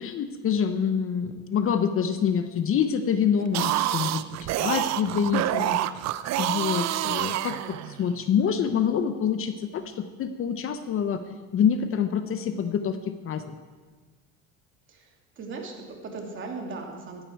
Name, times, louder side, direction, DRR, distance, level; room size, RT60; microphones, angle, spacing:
voice 1, 0.0-5.8 6.4-11.2 11.5-13.6, left 7 dB, 40° left, 9 dB, 0.9 m, -26 dB
sound 1, 3.4-8.1, right 13 dB, 50° right, 0.6 m, -27 dB
voice 2, 14.9-17.2, right 3 dB, 35° right, 1 dB, 2.8 m, -38 dB
15.5 x 13.5 x 4.7 m, 1.4 s
cardioid pair, 125°, 34 cm